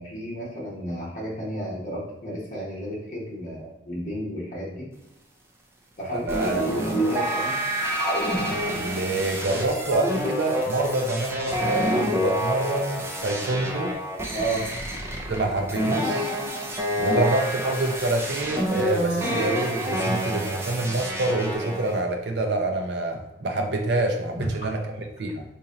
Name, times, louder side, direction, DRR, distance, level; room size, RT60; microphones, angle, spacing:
voice 1, 0.0-4.9 6.0-7.6 14.3-14.7 17.1-17.2, right 1 dB, 40° left, -6 dB, 1.0 m, -33 dB
voice 2, 6.1-6.6 8.7-14.0 15.3-16.4 17.0-25.4, right 2 dB, 65° right, 3 dB, 0.5 m, -26 dB
sound 1, 6.3-22.0, equal, 15° right, 0.4 m, -27 dB
2.9 x 2.7 x 3.7 m, 0.88 s
head